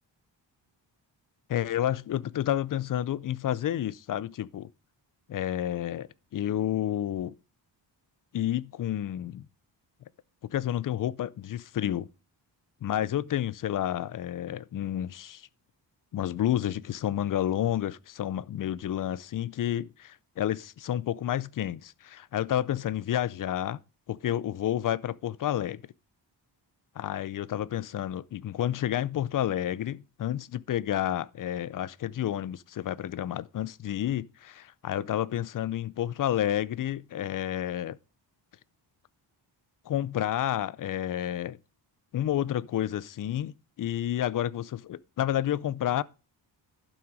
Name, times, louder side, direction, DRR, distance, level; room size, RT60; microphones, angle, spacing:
voice 1, 1.5-4.7 5.3-7.3 8.3-9.5 10.5-12.1 12.8-15.5 16.1-23.8 24.1-25.8 27.0-38.0 39.9-41.6 42.1-46.0, left 11 dB, 45° left, 0.5 m, -30 dB
11.5 x 6.0 x 4.8 m
wide cardioid pair, 120°, 45 cm